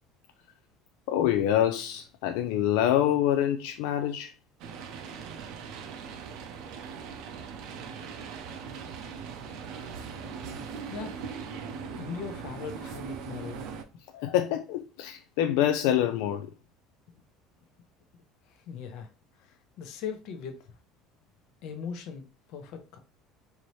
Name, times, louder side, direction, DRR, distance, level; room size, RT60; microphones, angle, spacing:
voice 1, 1.1-4.3 14.1-16.5, left 11 dB, 80° left, 0.3 m, -26 dB
sound 1, 4.6-13.8, right 6 dB, 55° right, 0.5 m, -40 dB
voice 2, 9.4-9.8 10.9-11.2 11.9-13.6 18.5-19.1 19.4-20.7 21.6-22.2 22.5-23.0, left 6 dB, 55° left, 0.7 m, -40 dB
4.6 x 2.8 x 3.1 m
cardioid pair, 170°, 0 cm